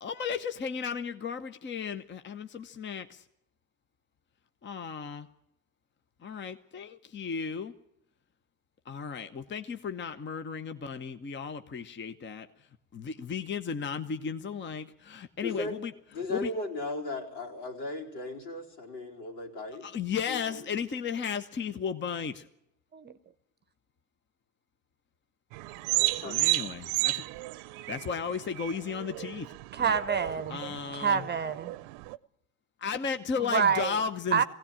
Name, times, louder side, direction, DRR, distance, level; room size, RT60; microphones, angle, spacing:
voice 1, 0.0-3.2 4.6-5.3 6.2-7.7 8.9-12.5 12.9-15.9 16.3-16.5 19.8-22.4 26.2-27.2 27.9-29.5 29.8-30.0 30.5-31.2 32.8-34.4, left 6 dB, 25° left, 10 dB, 1.0 m, -34 dB
voice 2, 15.4-15.8 16.1-19.9 20.3-20.6 26.0-26.4, left 2 dB, 75° left, -1 dB, 4.3 m, -37 dB
sound 1, 25.5-32.2, right 21 dB, 60° right, 0.8 m, -33 dB
voice 3, 29.7-30.6 30.9-31.7 33.5-34.0 34.3-34.4, right 7 dB, 20° right, 13 dB, 0.9 m, -27 dB
20.0 x 17.0 x 8.8 m, 0.81 s
hypercardioid pair, 85°, 48 cm